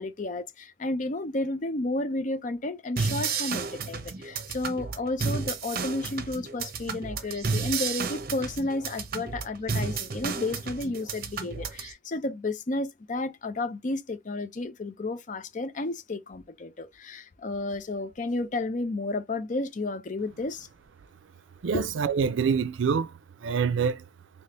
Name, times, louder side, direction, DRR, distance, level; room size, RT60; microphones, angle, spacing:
voice 1, 0.0-20.7 21.7-21.9, left 2 dB, 45° left, 0.6 m, -32 dB
sound 1, 3.0-11.9, right 5 dB, 50° right, 0.7 m, -32 dB
voice 2, 21.6-23.1 23.4-24.0, right 6 dB, 90° right, 0.4 m, -25 dB
3.3 x 2.8 x 2.9 m
head